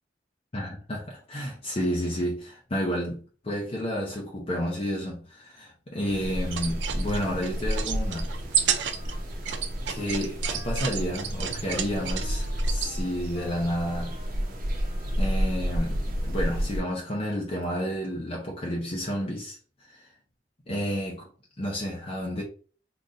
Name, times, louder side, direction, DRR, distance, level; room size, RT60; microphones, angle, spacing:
voice 1, 0.5-8.7 9.9-14.2 15.2-20.1 20.7-21.3 21.6-22.4, equal, 35° left, 0.7 m, -31 dB
sound 1, 6.1-16.8, equal, 50° right, 0.9 m, -31 dB
sound 2, 6.4-12.9, right 8 dB, 85° right, 0.5 m, -32 dB
Wind instrument woodwind instrument, 8.5-9.6 9.9-10.2 10.4-15.7, left 1 dB, 60° left, 1.2 m, -50 dB
3.8 x 3.0 x 2.6 m
head